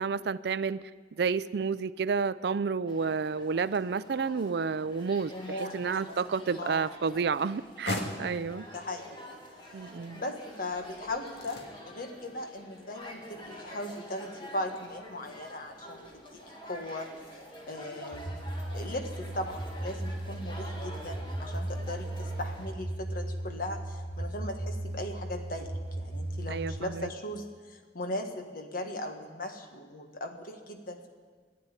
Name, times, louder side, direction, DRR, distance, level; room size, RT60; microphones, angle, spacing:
voice 1, 0.0-8.7 9.7-10.2 26.5-27.1, right 5 dB, 65° right, 16 dB, 0.4 m, -31 dB
sound 1, 2.9-22.7, equal, 30° left, 2.1 m, -48 dB
voice 2, 5.3-5.7 6.0-6.2 6.6-6.9 8.7-9.2 10.1-11.6 11.9-16.0 16.3-17.1 17.7-18.3 18.7-25.7 26.0-31.1, left 1 dB, 55° left, 5 dB, 1.6 m, -38 dB
sound 2, 7.3-19.3, left 2 dB, 70° left, 1.9 m, -45 dB
sound 3, 18.1-26.8, right 1 dB, 35° right, 0.7 m, -36 dB
14.0 x 10.5 x 9.8 m, 1.5 s
head